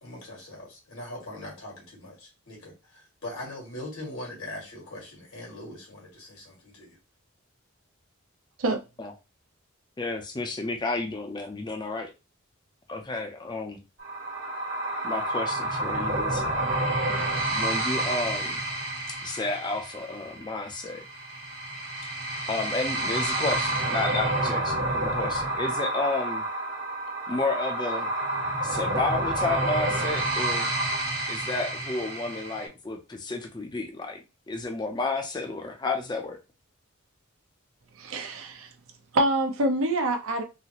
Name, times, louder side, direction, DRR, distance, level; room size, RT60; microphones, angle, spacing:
voice 1, 0.0-7.0, left 1 dB, 85° left, 1.9 m, -41 dB
voice 2, 10.0-12.1 12.9-13.8 15.0-16.7 17.5-18.4 19.2-21.0 22.5-23.6 23.9-26.5 27.3-28.1 28.6-30.7 31.3-36.4, left 3 dB, 20° left, 0.4 m, -31 dB
sound 1, 14.0-32.7, right 2 dB, 60° right, 1.2 m, -29 dB
voice 3, 38.0-38.7 39.1-40.4, right 1 dB, 80° right, 0.7 m, -26 dB
3.9 x 2.0 x 2.9 m
head